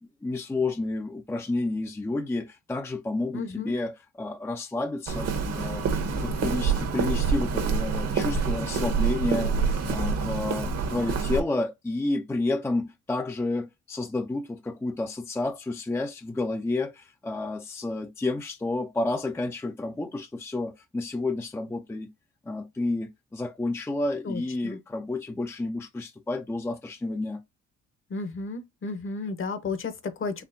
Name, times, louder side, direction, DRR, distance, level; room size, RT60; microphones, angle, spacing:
voice 1, 0.2-5.3 5.6-5.9 6.2-22.1 22.5-27.4, left 2 dB, 10° left, 0.4 m, -30 dB
voice 2, 3.3-3.7 24.2-24.8 28.1-30.4, left 4 dB, 45° left, 0.9 m, -33 dB
Walk footsteps, 5.1-11.4, right 5 dB, 55° right, 1.0 m, -27 dB
4.3 x 3.0 x 2.6 m
cardioid pair, 90°, 30 cm